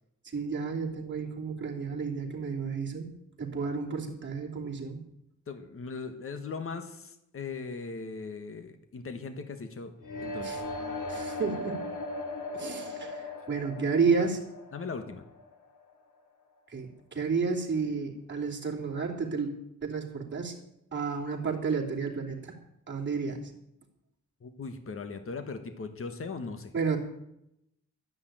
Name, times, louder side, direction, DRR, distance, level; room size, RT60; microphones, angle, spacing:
voice 1, 0.3-3.1 3.4-5.0 10.4-10.6 11.1-11.8 12.5-14.4 16.7-19.5 19.8-20.5 20.9-22.5 22.9-23.4 26.7-27.0, right 5 dB, 35° right, -1 dB, 3.1 m, -31 dB
voice 2, 5.5-9.9 10.2-10.6 14.2-14.3 14.7-15.2 24.4-26.7, left 4 dB, 45° left, 8 dB, 1.4 m, -39 dB
sound 1, 10.0-15.9, left 2 dB, 80° left, 2.2 m, -38 dB
12.5 x 10.5 x 9.1 m, 0.80 s
wide cardioid pair, 170°, 31 cm